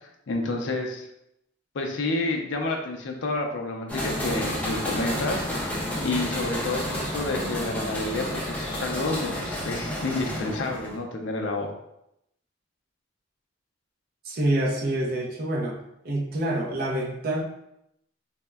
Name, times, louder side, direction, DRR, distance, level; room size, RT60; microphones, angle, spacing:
voice 1, 0.3-1.1 1.7-11.7, left 2 dB, 75° left, 2 dB, 0.4 m, -29 dB
sound 1, 3.9-11.0, equal, 10° left, 0.4 m, -30 dB
voice 2, 14.2-15.8 16.0-17.4, right 1 dB, 50° right, 0 dB, 0.5 m, -26 dB
3.5 x 2.0 x 2.2 m, 0.81 s
head